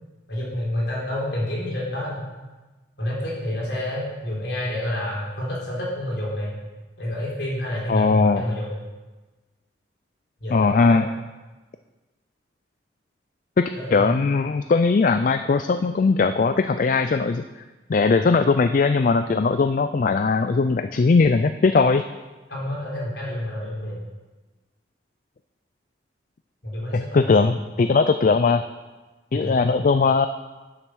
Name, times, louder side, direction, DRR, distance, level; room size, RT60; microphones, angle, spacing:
voice 1, 0.3-2.3 3.0-6.5 7.0-8.7 10.4-11.0 13.7-14.2 22.5-24.0 26.6-27.6 29.3-29.8, left 1 dB, 75° left, -4 dB, 3.8 m, -29 dB
voice 2, 7.9-8.4 10.5-11.1 13.6-17.4 17.9-22.0 26.9-28.6 29.3-30.3, left 4 dB, 45° left, 10 dB, 0.4 m, -19 dB
10.0 x 7.3 x 6.2 m, 1.2 s
head